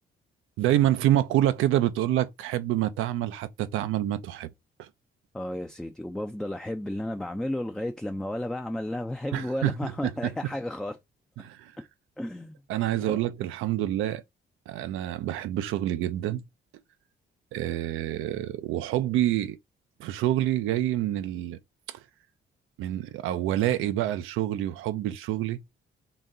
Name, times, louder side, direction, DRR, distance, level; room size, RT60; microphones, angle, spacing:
voice 1, 0.6-4.5 4.8-4.9 9.3-10.3 11.4-11.7 12.7-14.2 14.7-16.4 17.5-19.6 20.0-21.6 21.9-22.0 22.8-25.6, right 13 dB, 90° right, 0.4 m, -27 dB
voice 2, 5.3-11.0 12.2-12.6 13.1-13.2, left 1 dB, 5° left, 0.3 m, -33 dB
3.8 x 2.2 x 3.7 m
cardioid pair, 90°, 20 cm